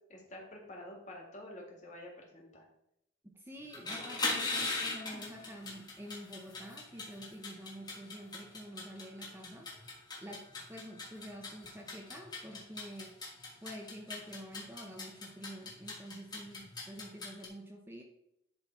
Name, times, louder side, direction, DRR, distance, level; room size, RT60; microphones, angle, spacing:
voice 1, 0.1-2.7, left 1 dB, 35° left, -1 dB, 2.0 m, -48 dB
voice 2, 3.2-9.7 10.2-13.2 13.6-18.0, equal, 10° right, 2 dB, 0.7 m, -48 dB
sound 1, 3.6-17.5, left 3 dB, 20° left, 1.6 m, -40 dB
10.5 x 3.9 x 4.6 m, 0.82 s
head